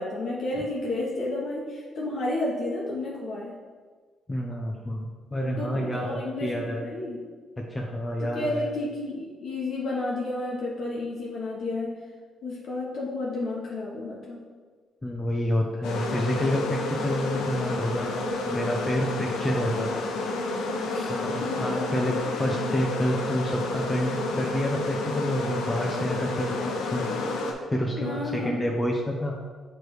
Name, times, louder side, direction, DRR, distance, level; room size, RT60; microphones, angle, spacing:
voice 1, 0.0-3.6 5.4-7.2 8.2-12.0 12.4-14.5 20.9-21.1 21.4-22.3 28.0-28.6, left 2 dB, 65° left, -4 dB, 1.0 m, -32 dB
voice 2, 4.3-6.8 7.6-8.7 15.0-18.1 18.4-20.4 21.1-27.1 27.7-29.3, equal, 20° left, -1 dB, 0.7 m, -29 dB
sound 1, 15.8-27.5, left 2 dB, 90° left, 0.8 m, -30 dB
6.5 x 3.2 x 4.7 m, 1.5 s
cardioid pair, 90°, 0 cm